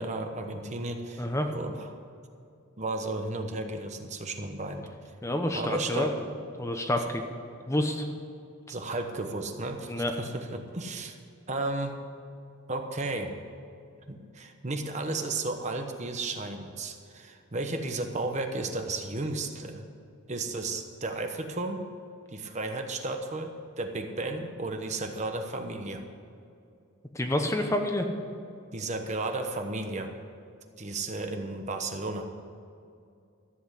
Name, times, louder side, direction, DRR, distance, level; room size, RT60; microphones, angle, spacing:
voice 1, 0.0-1.3 1.5-1.9 2.8-5.1 5.5-6.1 8.7-11.2 11.5-12.0 12.7-13.3 14.1-19.8 20.3-21.8 22.3-26.0 28.7-30.1 30.8-32.3, right 2 dB, 35° right, 5 dB, 1.0 m, -33 dB
voice 2, 1.2-1.5 5.2-6.1 6.6-7.2 7.7-8.1 9.9-10.1 27.1-28.1, left 1 dB, 15° left, 4 dB, 0.9 m, -28 dB
14.0 x 8.0 x 8.1 m, 2.5 s
head